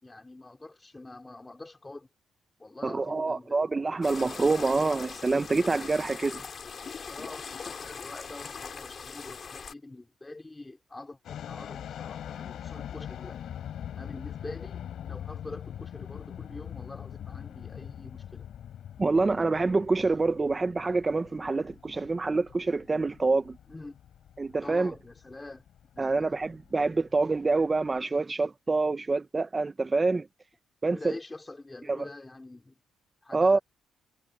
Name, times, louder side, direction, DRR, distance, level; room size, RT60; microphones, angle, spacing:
voice 1, 0.0-2.1 2.6-3.7 7.1-13.4 14.0-18.5 23.7-24.0 24.6-25.7 25.9-26.4 30.9-32.8 33.2-33.6, left 2 dB, 15° left, 3.6 m, -45 dB
voice 2, 2.8-6.4 19.0-23.6 24.4-24.9 26.0-30.3 30.8-31.1 31.9-32.1 33.3-33.6, right 3 dB, 25° right, 1.1 m, -26 dB
sound 1, 4.0-9.7, left 6 dB, 45° left, 2.6 m, -41 dB
sound 2, 11.2-28.0, left 10 dB, 70° left, 5.2 m, -43 dB
cardioid pair, 90°, 0 cm